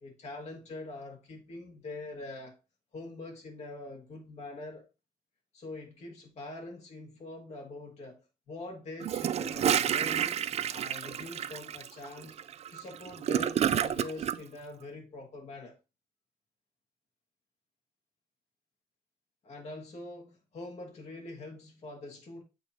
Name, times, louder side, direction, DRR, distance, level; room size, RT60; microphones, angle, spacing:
voice 1, 0.0-2.6 2.9-4.9 5.5-10.4 10.7-12.4 12.7-15.8 19.4-22.4, left 2 dB, 40° left, 1.8 m, -44 dB
Gurgling / Toilet flush, 9.0-14.4, right 9 dB, 40° right, 0.4 m, -29 dB
8.4 x 3.0 x 4.2 m
cardioid pair, 110°, 17 cm